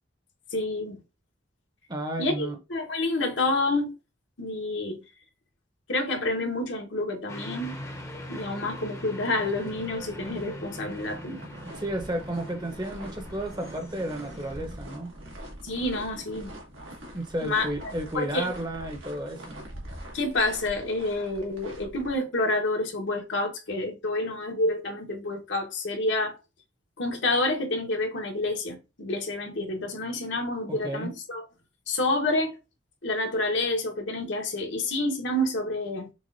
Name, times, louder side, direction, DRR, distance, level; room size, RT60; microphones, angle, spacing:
voice 1, 0.5-1.0 2.2-3.9 4.4-5.0 5.9-7.8 8.3-11.4 15.6-16.6 17.4-18.5 20.1-26.4 27.0-31.4 31.9-32.6 33.0-36.1, left 2 dB, 70° left, 1.3 m, -28 dB
voice 2, 1.9-2.6 11.7-15.1 17.1-19.6 30.7-31.1, right 1 dB, 20° right, 0.9 m, -32 dB
sound 1, 7.3-14.6, left 1 dB, 15° left, 0.8 m, -42 dB
sound 2, 7.6-22.2, right 1 dB, 85° right, 1.7 m, -44 dB
6.1 x 2.5 x 2.6 m
head